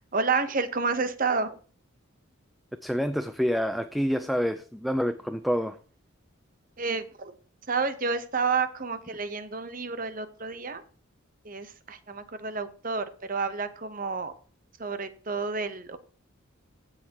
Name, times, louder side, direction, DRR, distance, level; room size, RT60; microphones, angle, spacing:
voice 1, 0.0-1.6 6.8-7.3 7.7-10.8 11.4-14.3 14.8-16.0, right 4 dB, 40° right, 11 dB, 0.9 m, -30 dB
voice 2, 2.8-5.8, equal, ahead, 9 dB, 0.4 m, -27 dB
15.5 x 6.6 x 2.9 m, 0.40 s
head